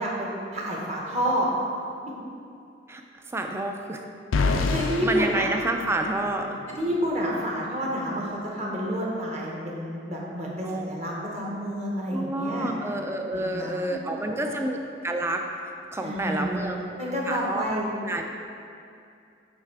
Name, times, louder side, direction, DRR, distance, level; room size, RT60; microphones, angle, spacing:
voice 1, 0.0-1.5 4.7-5.5 6.8-12.7 13.3-14.5 16.0-17.9, equal, 35° right, -3 dB, 1.1 m, -29 dB
voice 2, 3.3-4.0 5.0-6.6 10.6-10.9 12.1-14.8 15.0-15.4 15.9-16.9 17.3-17.6 18.0-18.2, right 2 dB, 15° right, 3 dB, 0.4 m, -29 dB
sound 1, 4.3-6.5, left 3 dB, 90° left, 0.4 m, -27 dB
8.3 x 3.3 x 4.7 m, 2.5 s
head